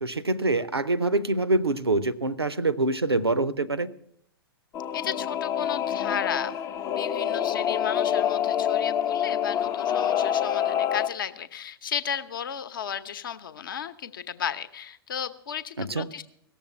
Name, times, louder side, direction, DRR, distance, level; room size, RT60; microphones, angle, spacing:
voice 1, 0.0-3.9 15.8-16.1, right 2 dB, 85° right, 18 dB, 0.6 m, -25 dB
Singing / Musical instrument, 4.7-11.1, left 9 dB, 25° left, 0.5 m, -26 dB
voice 2, 4.9-6.6 6.9-16.2, left 8 dB, 55° left, 11 dB, 0.8 m, -34 dB
17.0 x 7.2 x 7.2 m, 0.73 s
figure-of-eight pair, 105°, 13 cm